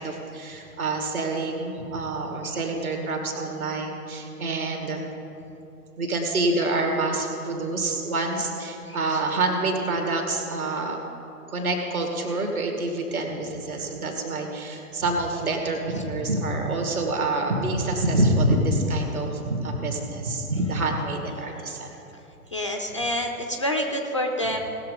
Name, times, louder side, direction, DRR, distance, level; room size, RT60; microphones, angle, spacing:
voice 1, 0.0-5.0 6.0-11.0 11.5-21.9, right 2 dB, 70° right, 2 dB, 2.3 m, -27 dB
voice 2, 22.5-24.6, equal, 20° left, 2 dB, 0.4 m, -27 dB
18.5 x 6.7 x 5.2 m, 2.9 s
figure-of-eight pair, 120°, 45 cm